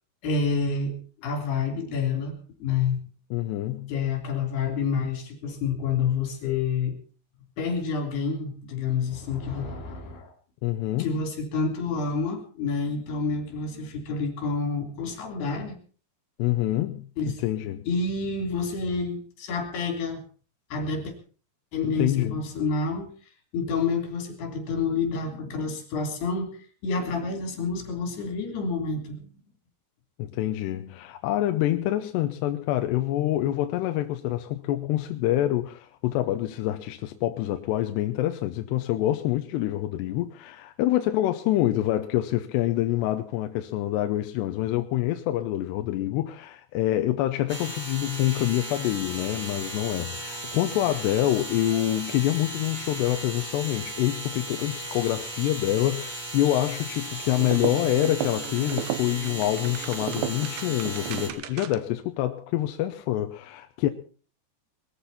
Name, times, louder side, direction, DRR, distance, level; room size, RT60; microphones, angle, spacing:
voice 1, 0.2-3.0 3.9-7.0 7.6-10.3 11.0-15.8 17.2-17.4 17.8-20.2 20.7-21.1 21.7-23.1 23.5-29.4, left 4 dB, 60° left, 5.2 m, -28 dB
voice 2, 3.3-3.9 10.6-11.1 16.4-17.0 17.4-17.9 21.8-22.4 30.2-63.9, left 14 dB, 75° left, 2.8 m, -26 dB
sound 1, 47.5-61.3, right 1 dB, 55° right, 0.5 m, -36 dB
sound 2, 57.4-62.0, right 12 dB, 80° right, 3.2 m, -34 dB
22.0 x 14.0 x 4.2 m
omnidirectional pair, 5.3 m